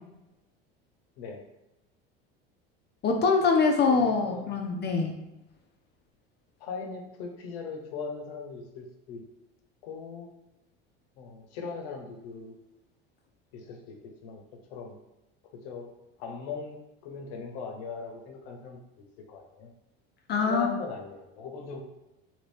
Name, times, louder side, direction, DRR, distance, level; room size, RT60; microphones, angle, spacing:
voice 1, 3.0-5.1 20.3-20.7, left 4 dB, 35° left, 3 dB, 0.5 m, -24 dB
voice 2, 3.8-4.5 6.6-9.2 9.8-10.3 11.2-12.5 13.5-15.0 15.5-15.9 16.2-18.8 19.3-19.7 20.4-21.8, left 5 dB, 75° left, 4 dB, 0.7 m, -39 dB
2.8 x 2.7 x 3.3 m, 0.95 s
supercardioid pair, 90°, 29 cm